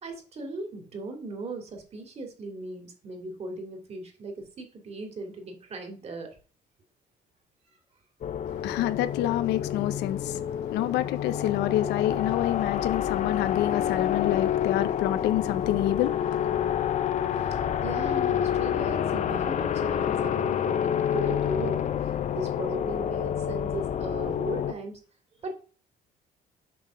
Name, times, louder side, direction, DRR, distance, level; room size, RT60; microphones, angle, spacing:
voice 1, 0.0-6.3 17.4-21.8 22.3-25.0 25.4-25.6, right 2 dB, 40° right, 2.8 m, -37 dB
sound 1, 8.2-24.7, left 9 dB, 45° left, 0.6 m, -28 dB
voice 2, 8.5-17.5, left 13 dB, 85° left, 0.8 m, -28 dB
7.0 x 3.8 x 6.3 m
cardioid pair, 110°, 17 cm